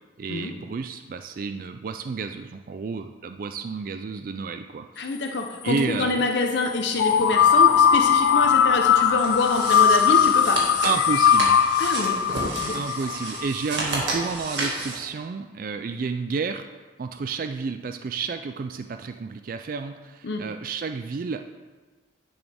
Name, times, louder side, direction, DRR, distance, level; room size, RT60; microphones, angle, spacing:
voice 1, 0.2-5.1 5.6-6.3 9.9-10.0 10.8-11.6 12.7-16.7 17.0-21.4, right 5 dB, 45° right, 7 dB, 0.3 m, -31 dB
voice 2, 5.0-10.6 11.8-12.2 12.4-12.7 20.2-20.4, left 2 dB, 65° left, 3 dB, 0.7 m, -26 dB
sound 1, 7.0-13.8, left 8 dB, 90° left, 0.3 m, -19 dB
sound 2, 9.2-15.0, right 2 dB, 70° right, 2.0 m, -32 dB
10.0 x 6.2 x 3.5 m, 1.3 s
head